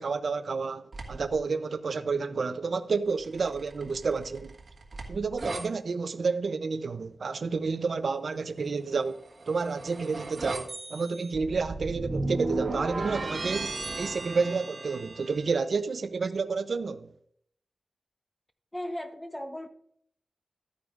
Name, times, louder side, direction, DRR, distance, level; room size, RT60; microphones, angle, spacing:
voice 1, 0.0-4.5 5.1-17.1, right 4 dB, 70° right, 0.6 m, -30 dB
sound 1, 0.9-1.4 3.2-5.6 9.1-15.5, right 2 dB, 55° right, 1.6 m, -35 dB
voice 2, 18.7-19.7, left 1 dB, 10° left, 0.9 m, -36 dB
12.5 x 9.5 x 2.5 m
wide cardioid pair, 125°, 0 cm